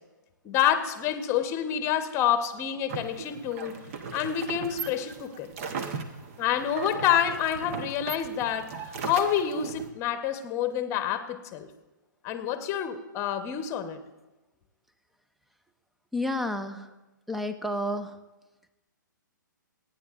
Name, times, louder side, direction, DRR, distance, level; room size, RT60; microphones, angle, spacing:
voice 1, 0.4-3.7 4.1-5.5 6.4-11.7 12.2-14.0, left 9 dB, 25° left, 9 dB, 1.0 m, -28 dB
sound 1, 2.9-9.9, right 5 dB, 40° right, 1.0 m, -38 dB
voice 2, 16.1-16.9 17.3-18.2, left 1 dB, ahead, 8 dB, 0.6 m, -30 dB
28.0 x 9.7 x 2.5 m, 1.1 s
figure-of-eight pair, 130°, 11 cm